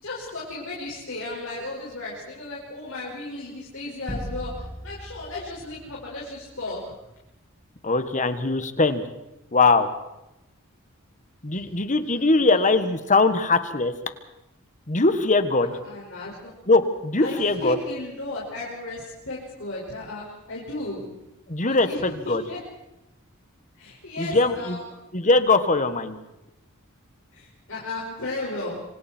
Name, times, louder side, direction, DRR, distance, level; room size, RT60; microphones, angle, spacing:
voice 1, 0.0-7.0 11.5-11.7 12.3-12.6 15.6-16.5 17.2-21.0 21.6-22.6 23.8-24.8 27.3-28.8, left 2 dB, 65° left, -5 dB, 5.8 m, -35 dB
sound 1, 4.1-6.7, equal, 15° right, 2.3 m, -38 dB
voice 2, 7.8-9.0 9.5-9.9 11.4-13.9 14.9-15.7 16.7-17.8 21.5-22.4 24.2-24.8 25.1-26.2, left 3 dB, 35° left, 10 dB, 1.5 m, -21 dB
26.5 x 25.5 x 4.5 m, 0.93 s
head